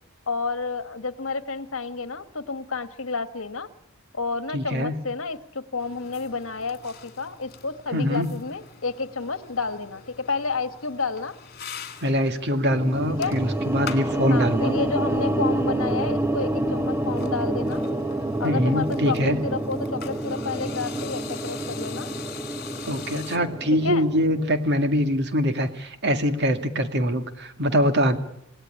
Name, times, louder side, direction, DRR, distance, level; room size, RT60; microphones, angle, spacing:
voice 1, 0.3-3.7 4.1-11.3 13.2-13.4 14.3-17.8 18.4-22.1 23.8-24.1, left 4 dB, 65° left, 11 dB, 1.5 m, -30 dB
voice 2, 4.5-4.9 7.9-8.3 12.0-14.7 18.4-19.4 22.9-28.2, equal, 50° right, 8 dB, 2.1 m, -23 dB
sound 1, 5.8-23.4, left 6 dB, 45° left, 2.8 m, -43 dB
sound 2, 12.7-25.0, right 1 dB, 10° right, 1.2 m, -28 dB
27.0 x 18.0 x 10.0 m, 0.80 s
head